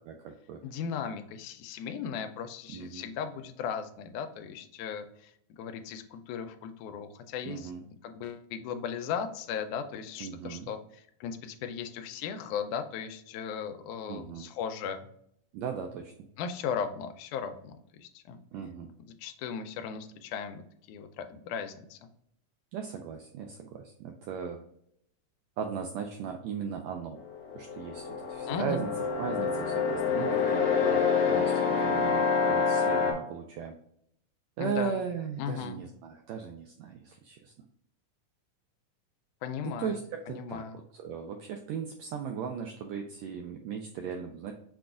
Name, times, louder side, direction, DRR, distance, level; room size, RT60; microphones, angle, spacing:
voice 1, 0.1-0.6 2.7-3.1 7.4-7.8 10.2-10.7 14.1-14.5 15.5-16.1 18.5-18.9 22.7-24.6 25.6-27.2 27.5-28.9 29.2-33.8 34.6-37.5 39.6-44.5, right 7 dB, 85° right, 4 dB, 1.5 m, -37 dB
voice 2, 0.6-7.7 8.0-15.1 16.4-18.4 19.1-22.0 28.5-28.8 34.6-35.0 35.4-35.8 39.4-40.0 40.3-40.8, left 7 dB, 80° left, 8 dB, 2.0 m, -37 dB
sound 1, 27.2-33.1, left 5 dB, 60° left, 2.1 m, -27 dB
6.2 x 2.3 x 3.7 m, 0.72 s
omnidirectional pair, 3.5 m